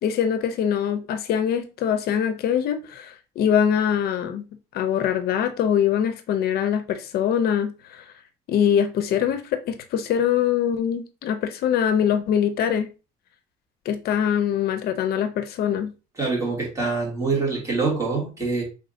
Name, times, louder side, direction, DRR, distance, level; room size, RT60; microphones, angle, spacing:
voice 1, 0.0-4.5 4.7-8.1 8.5-12.9 13.9-15.9, left 8 dB, 70° left, 0.6 m, -23 dB
voice 2, 16.2-18.6, right 4 dB, 20° right, 2.5 m, -25 dB
5.2 x 3.5 x 2.6 m
cardioid pair, 110°, 17 cm